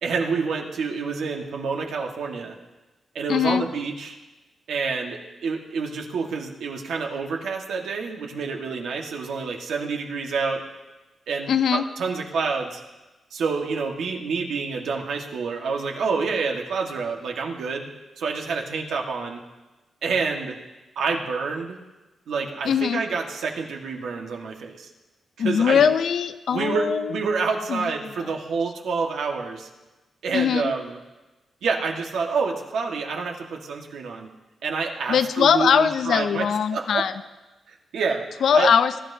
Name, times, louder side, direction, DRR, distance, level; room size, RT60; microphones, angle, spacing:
voice 1, 0.0-2.5 3.1-4.2 4.7-10.6 11.3-12.8 13.3-17.9 18.2-19.4 20.0-20.6 20.9-21.8 22.3-24.9 25.4-25.8 26.5-29.7 30.2-31.0 31.6-34.3 34.6-36.5 36.7-37.0 37.7-38.3 38.5-38.7, right 4 dB, 85° right, 1 dB, 1.6 m, -28 dB
voice 2, 3.3-3.7 11.5-11.8 22.6-23.0 25.4-27.2 27.7-28.3 30.3-30.7 35.1-37.1 38.4-39.0, left 7 dB, 75° left, 11 dB, 0.6 m, -21 dB
22.0 x 11.5 x 2.8 m, 1.1 s
cardioid pair, 85°, 0 cm